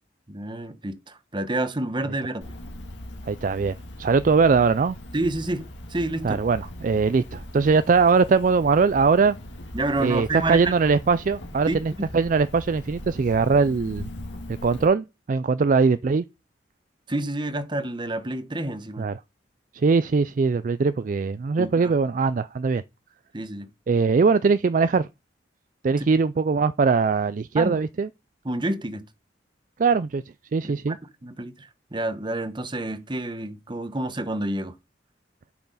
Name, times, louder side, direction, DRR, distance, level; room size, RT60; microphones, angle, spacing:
voice 1, 0.3-2.5 5.1-6.4 9.7-10.7 11.7-12.0 17.1-19.1 21.6-21.9 23.3-23.7 26.0-26.1 27.6-27.8 28.4-29.0 30.6-34.7, right 2 dB, 25° right, 1.1 m, -29 dB
Cricket, 2.4-14.9, left 1 dB, 90° left, 2.6 m, -40 dB
voice 2, 3.2-5.0 6.2-9.4 10.0-14.1 14.6-16.2 19.0-19.2 19.7-22.8 23.9-25.1 25.8-28.1 29.8-30.2 30.5-31.0, right 4 dB, 45° right, 0.4 m, -21 dB
10.5 x 5.8 x 4.0 m
head